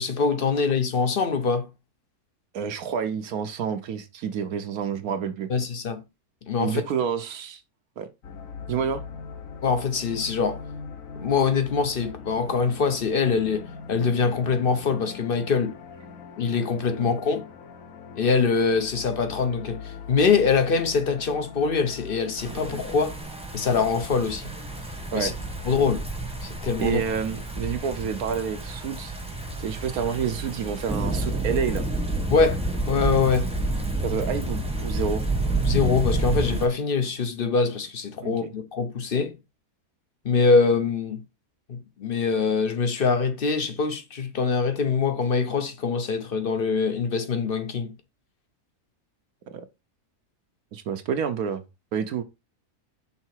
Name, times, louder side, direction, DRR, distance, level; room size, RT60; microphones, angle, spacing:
voice 1, 0.0-1.7 5.5-6.0 6.5-6.8 9.6-10.6 11.1-15.8 16.4-17.5 18.1-23.2 23.5-24.5 25.1-25.3 25.7-26.1 26.4-27.0 32.3-32.6 32.9-33.5 35.7-39.4 40.2-41.2 41.7-47.9, left 5 dB, 45° left, 0.8 m, -24 dB
voice 2, 2.5-5.5 6.6-7.6 8.0-8.1 8.7-9.0 17.0-17.2 25.1-25.3 26.8-29.1 29.6-31.9 34.0-35.2 38.2-38.5 49.5-49.7 50.7-51.6 51.9-52.2, right 7 dB, 75° right, 1.2 m, -29 dB
sound 1, 8.2-22.8, left 5 dB, 60° left, 1.4 m, -41 dB
sound 2, 22.4-36.7, right 2 dB, 5° right, 0.9 m, -29 dB
5.7 x 3.9 x 4.5 m
omnidirectional pair, 1.6 m